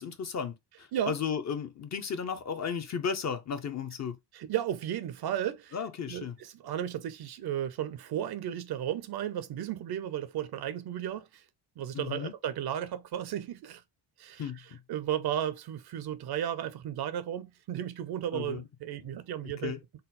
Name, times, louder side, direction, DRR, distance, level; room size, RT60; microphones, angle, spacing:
voice 1, 0.0-4.1 5.7-6.3 11.9-12.3 14.4-14.6 18.3-18.6 19.6-19.8, left 6 dB, 35° left, 0.6 m, -34 dB
voice 2, 4.3-5.8 6.1-11.4 11.8-13.8 14.2-19.7, right 10 dB, 55° right, 0.6 m, -34 dB
4.0 x 2.0 x 4.0 m
cardioid pair, 120°, 46 cm